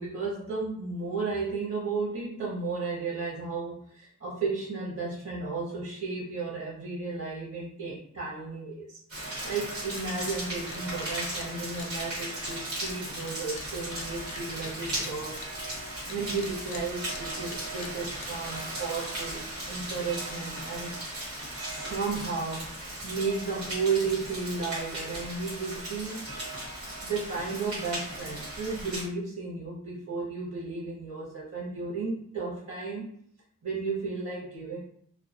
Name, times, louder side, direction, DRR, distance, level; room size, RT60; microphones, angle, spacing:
voice 1, 0.0-9.0 9.4-15.4 16.0-19.4 19.7-21.0 21.6-22.7 23.0-26.2 27.0-33.1 33.6-34.8, right 4 dB, 60° right, -6 dB, 0.7 m, -33 dB
Rain, 9.1-29.0, right 1 dB, 85° right, 1.2 m, -37 dB
sound 1, 9.6-9.7 9.9-10.4 10.7-16.1 16.4-19.0, left 5 dB, 60° left, 0.4 m, -46 dB
2.2 x 2.2 x 2.6 m, 0.64 s
head